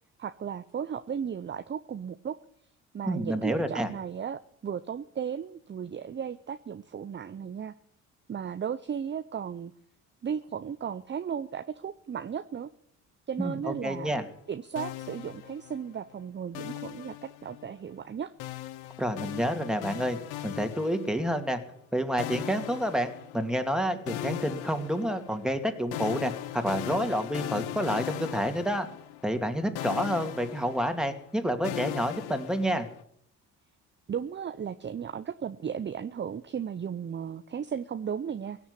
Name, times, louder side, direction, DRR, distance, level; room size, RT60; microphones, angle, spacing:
voice 1, 0.2-2.4 2.9-7.7 8.3-9.7 10.2-12.7 13.3-14.2 14.5-18.3 34.1-38.6, right 7 dB, 30° right, 12 dB, 0.7 m, -35 dB
voice 2, 3.1-3.9 13.4-14.2 19.0-20.2 20.4-21.6 21.9-28.9 29.2-32.9, equal, ahead, 6 dB, 2.5 m, -29 dB
sound 1, 14.8-16.0 16.5-17.8 18.4-21.5 22.2-23.7 24.1-29.5 29.8-33.0, left 14 dB, 80° left, 0.8 m, -39 dB
17.0 x 7.2 x 9.8 m, 0.69 s
hypercardioid pair, 60°, 38 cm